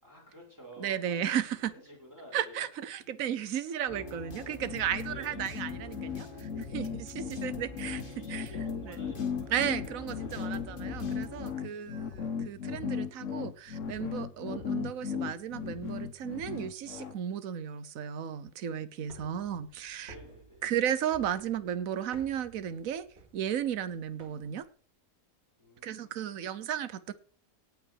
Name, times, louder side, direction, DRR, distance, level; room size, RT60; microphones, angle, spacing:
voice 1, 0.0-2.6 3.7-3.8 4.6-5.4 6.7-6.8 8.1-10.6 11.2-12.0 19.1-19.8 20.1-20.6 25.6-26.6, equal, 10° right, 6.0 m, -53 dB
voice 2, 0.8-1.7 2.3-8.0 8.3-8.5 8.8-9.0 9.5-20.1 20.6-23.0 23.3-24.6 25.8-27.1, right 9 dB, 65° right, 1.3 m, -34 dB
sound 1, 3.9-11.6, left 2 dB, 35° left, 2.4 m, -45 dB
sound 2, 4.6-17.1, left 7 dB, 60° left, 1.4 m, -36 dB
sound 3, 19.0-24.7, right 2 dB, 45° right, 3.8 m, -55 dB
17.5 x 5.9 x 6.5 m
omnidirectional pair, 1.5 m